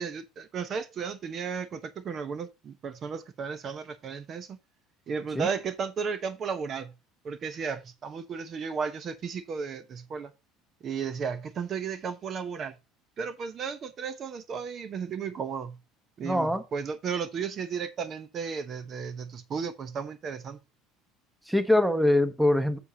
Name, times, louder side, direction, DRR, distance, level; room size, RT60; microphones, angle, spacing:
voice 1, 0.0-4.6 5.1-6.9 7.2-10.3 10.8-12.7 13.2-15.8 16.2-20.6, right 6 dB, 40° right, 0.9 m, -34 dB
voice 2, 16.2-16.6 21.5-22.8, left 1 dB, 5° right, 1.0 m, -23 dB
9.6 x 6.9 x 2.8 m
supercardioid pair, 100°, 0 cm